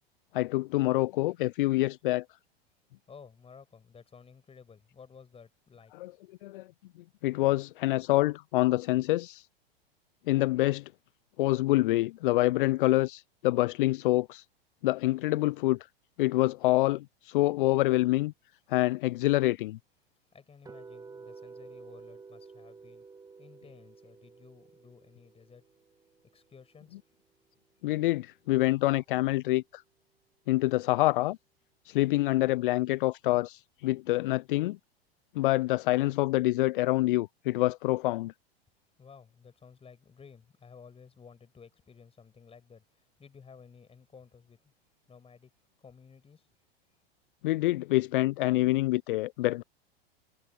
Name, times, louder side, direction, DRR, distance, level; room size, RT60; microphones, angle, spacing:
voice 1, 0.3-2.2 6.0-6.1 6.4-6.7 7.2-9.5 10.3-10.9 11.4-14.4 14.8-15.8 16.2-18.3 18.7-19.8 27.8-29.8 30.5-31.4 31.9-34.8 35.3-38.3 47.4-49.6, left 18 dB, 55° left, 0.7 m, -26 dB
voice 2, 3.1-5.9 20.3-23.1 23.4-25.7 26.3-27.0 39.0-44.7 45.1-45.5 45.8-46.5, left 6 dB, 20° left, 7.4 m, -54 dB
sound 1, 20.6-26.7, right 4 dB, 10° right, 1.9 m, -51 dB
figure-of-eight pair, 95°, 31 cm